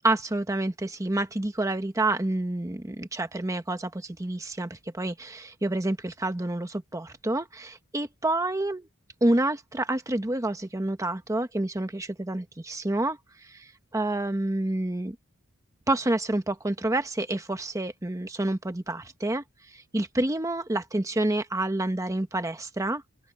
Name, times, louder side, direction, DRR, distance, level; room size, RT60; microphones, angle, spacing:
voice 1, 0.0-8.9 9.2-15.2 15.9-23.0, right 1 dB, 15° right, 0.9 m, -28 dB
open air
head